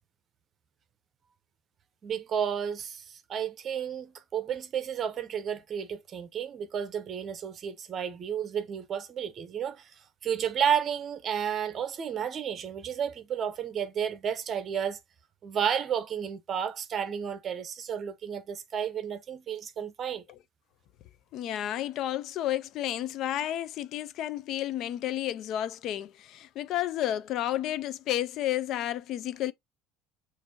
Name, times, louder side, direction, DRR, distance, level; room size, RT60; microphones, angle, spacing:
voice 1, 2.0-15.0 15.4-20.2, right 8 dB, 40° right, 0.8 m, -32 dB
voice 2, 21.3-29.5, left 12 dB, 60° left, 0.4 m, -31 dB
6.6 x 2.6 x 2.9 m
supercardioid pair, 100°, 0 cm